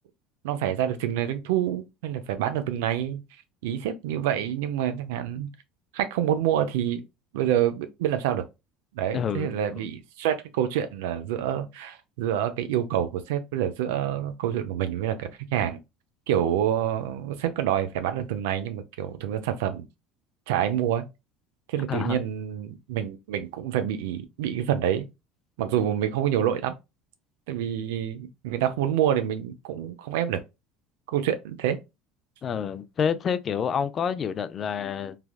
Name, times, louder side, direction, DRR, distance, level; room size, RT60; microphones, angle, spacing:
voice 1, 0.4-3.2 3.6-5.5 5.9-7.0 7.3-8.4 8.9-15.8 16.3-19.9 20.5-21.0 21.7-25.1 25.6-26.7 27.5-30.4 31.1-31.8, right 10 dB, 85° right, 0.4 m, -27 dB
voice 2, 9.1-9.6 21.9-22.2 32.4-35.2, left 7 dB, 40° left, 0.3 m, -28 dB
3.3 x 2.2 x 2.2 m
supercardioid pair, 100°, 0 cm